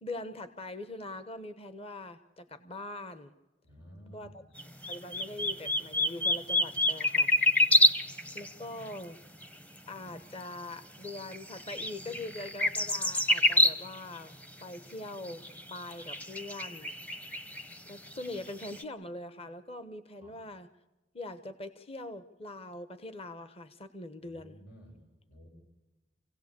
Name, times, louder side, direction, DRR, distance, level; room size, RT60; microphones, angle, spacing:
voice 1, 0.0-3.3 4.1-4.4 4.9-7.3 8.3-9.2 9.9-15.4 15.7-16.9 17.8-20.7 21.1-24.6, left 2 dB, 35° left, 11 dB, 1.1 m, -42 dB
voice 2, 3.6-4.4 7.8-7.9 20.2-20.4 24.2-25.0 25.3-25.5, equal, 85° left, 1 dB, 6.9 m, -53 dB
sound 1, 4.6-9.0 9.4-9.5 10.1-10.2 11.0-14.2 14.4-14.5 15.2-18.8, left 1 dB, 10° left, 0.8 m, -28 dB
27.0 x 17.0 x 8.4 m, 1.1 s
head